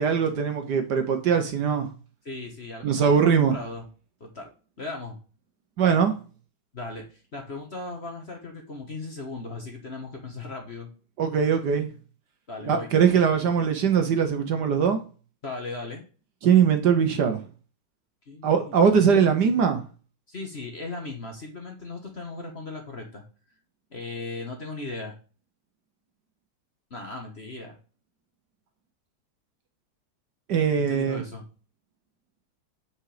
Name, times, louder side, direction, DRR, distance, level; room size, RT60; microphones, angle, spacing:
voice 1, 0.0-1.9 2.8-3.5 5.8-6.1 11.2-11.9 12.6-15.0 16.4-17.4 18.4-19.8 30.5-31.2, right 7 dB, 60° right, 1.4 m, -21 dB
voice 2, 2.2-3.8 4.2-4.5 4.8-5.2 6.7-10.9 12.5-12.9 15.4-16.0 18.3-19.0 20.3-23.2 23.9-25.1 26.9-27.8 30.8-31.4, left 3 dB, 35° left, 1.3 m, -37 dB
8.6 x 5.2 x 5.0 m
omnidirectional pair, 2.3 m